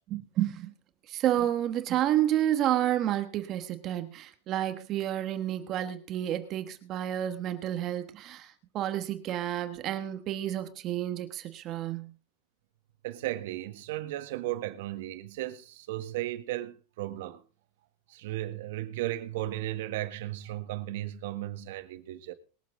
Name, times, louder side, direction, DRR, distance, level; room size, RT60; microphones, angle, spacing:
voice 1, 0.1-0.7 1.1-12.1, right 12 dB, 30° right, 1.3 m, -30 dB
voice 2, 13.0-17.4 18.1-22.3, right 15 dB, 65° right, 1.6 m, -35 dB
22.5 x 7.5 x 3.8 m
supercardioid pair, 165°, 0 cm